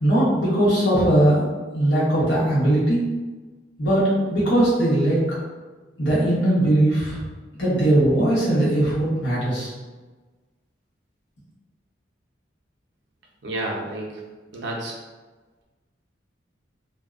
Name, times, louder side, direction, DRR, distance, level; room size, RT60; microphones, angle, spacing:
voice 1, 0.0-1.5 1.7-3.0 3.8-5.2 6.0-7.2 7.6-9.7, right 1 dB, 85° left, -9 dB, 1.2 m, -19 dB
voice 2, 13.4-14.1 14.5-14.9, right 1 dB, 70° right, -2 dB, 0.5 m, -30 dB
2.7 x 2.1 x 2.4 m, 1.3 s
head